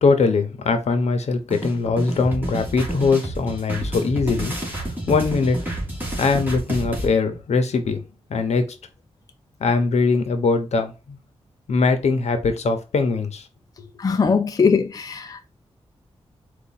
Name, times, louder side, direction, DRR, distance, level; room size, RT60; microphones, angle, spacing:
voice 1, 0.0-5.6 6.2-8.0 8.3-8.7 9.6-11.2 11.7-13.5, left 4 dB, 85° left, 0.9 m, -21 dB
sound 1, 1.5-7.1, right 1 dB, 15° right, 2.0 m, -29 dB
voice 2, 14.0-15.5, left 5 dB, 35° left, 0.5 m, -20 dB
4.7 x 2.5 x 4.1 m
wide cardioid pair, 125°, 11 cm